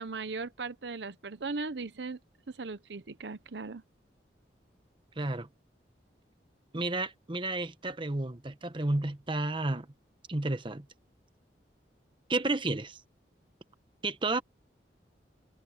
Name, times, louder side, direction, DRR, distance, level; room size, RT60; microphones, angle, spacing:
voice 1, 0.0-2.2 2.5-3.8, right 4 dB, 75° right, 0.8 m, -38 dB
voice 2, 5.2-5.5 6.7-9.9 10.3-10.8 12.3-13.0 14.0-14.4, right 2 dB, 30° right, 1.1 m, -31 dB
head